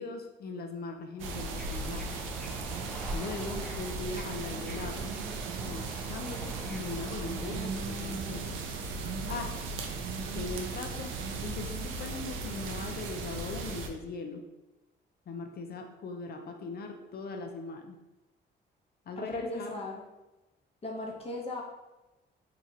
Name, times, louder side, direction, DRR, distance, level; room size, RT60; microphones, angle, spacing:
voice 1, 0.0-2.2 3.1-5.1 5.6-8.6 9.3-9.6 10.3-11.1 11.4-14.4 15.3-18.0 19.1-19.8, left 3 dB, 50° left, 4 dB, 0.5 m, -40 dB
Bird / Ocean, 1.2-7.6, equal, 5° left, 0.5 m, -47 dB
sound 1, 1.2-13.9, right 3 dB, 80° right, 0.5 m, -36 dB
voice 2, 19.2-20.0 20.8-21.6, left 1 dB, 30° left, -1 dB, 0.9 m, -37 dB
2.9 x 2.4 x 4.1 m, 1.0 s
cardioid pair, 90°, 20 cm